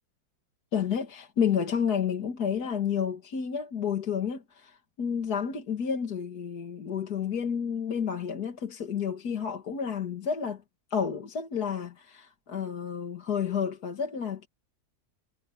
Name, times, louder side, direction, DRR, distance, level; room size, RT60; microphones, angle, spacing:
voice 1, 0.7-10.6 10.9-14.5, left 7 dB, 70° left, 2.3 m, -30 dB
omnidirectional pair, 1.7 m